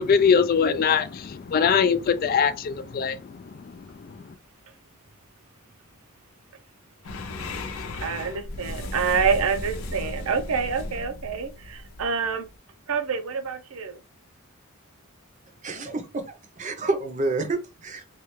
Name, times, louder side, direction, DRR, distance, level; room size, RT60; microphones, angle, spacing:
voice 1, 0.0-3.2, left 6 dB, 45° left, 0.3 m, -21 dB
sound 1, 7.0-12.6, left 2 dB, 80° left, 0.7 m, -35 dB
voice 2, 7.9-12.5 12.9-14.0, right 5 dB, 80° right, 0.6 m, -27 dB
voice 3, 15.6-16.2 16.6-18.1, right 3 dB, 35° right, 0.6 m, -28 dB
3.2 x 2.3 x 3.1 m
head